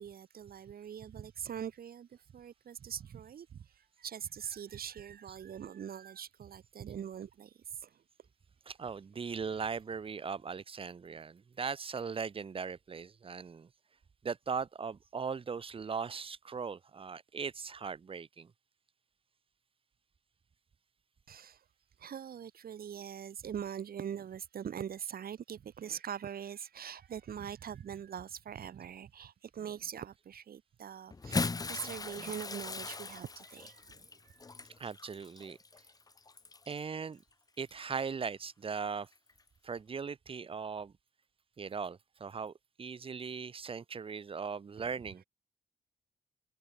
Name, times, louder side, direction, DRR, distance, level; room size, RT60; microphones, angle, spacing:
voice 1, 0.0-3.7 4.0-7.5 7.8-7.9 21.3-21.6 22.0-34.4 44.8-44.9, right 8 dB, 60° right, 1.5 m, -43 dB
voice 2, 8.7-13.7 14.2-18.5 34.8-35.6 36.7-37.2 37.6-39.1 39.6-40.9 41.6-45.2, right 5 dB, 35° right, 0.7 m, -39 dB
Bathtub (filling or washing) / Splash splatter, 31.1-36.8 37.7-37.9 39.3-39.4, left 4 dB, 20° left, 0.7 m, -39 dB
cardioid pair, 90°, 17 cm